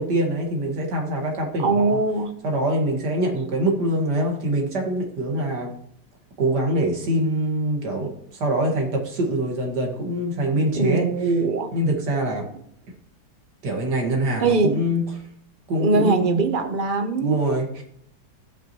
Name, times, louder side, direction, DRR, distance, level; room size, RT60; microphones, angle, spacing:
voice 1, 0.0-2.0 2.4-5.7 6.4-11.1 11.7-12.5 13.6-15.1 15.7-16.4 17.2-17.8, right 1 dB, 70° right, 1 dB, 2.4 m, -24 dB
voice 2, 1.6-2.3 10.8-11.7 14.4-14.8 15.8-17.4, right 4 dB, 40° right, 6 dB, 0.8 m, -21 dB
16.0 x 5.8 x 3.1 m, 0.68 s
omnidirectional pair, 1.9 m